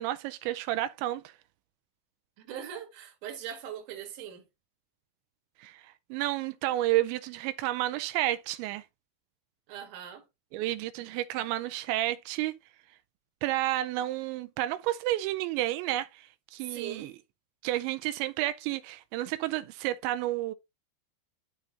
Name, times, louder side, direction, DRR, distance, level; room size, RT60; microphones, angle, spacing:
voice 1, 0.0-1.3 5.6-8.8 10.5-12.5 13.4-17.1 17.6-20.5, right 15 dB, 85° right, 2.9 m, -31 dB
voice 2, 2.4-4.4 9.7-10.2 16.6-17.1, right 9 dB, 55° right, 2.8 m, -40 dB
12.5 x 4.9 x 2.7 m
omnidirectional pair, 5.1 m